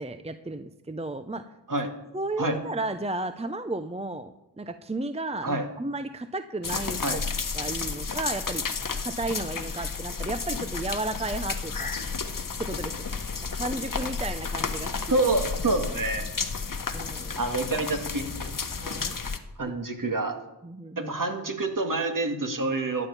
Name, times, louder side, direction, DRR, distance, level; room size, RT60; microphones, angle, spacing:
voice 1, 0.0-1.5 2.1-7.2 7.5-8.6 9.0-12.0 12.6-15.1 16.9-17.5 18.8-19.2 20.6-21.1, right 2 dB, 15° right, 10 dB, 0.7 m, -34 dB
sound 1, 6.6-19.4, left 5 dB, 50° left, 1.2 m, -32 dB
voice 2, 15.1-16.2 17.4-18.5 19.6-20.3 21.0-23.1, right 2 dB, 50° right, 4 dB, 2.2 m, -27 dB
13.5 x 9.0 x 7.1 m, 0.95 s
cardioid pair, 45°, 42 cm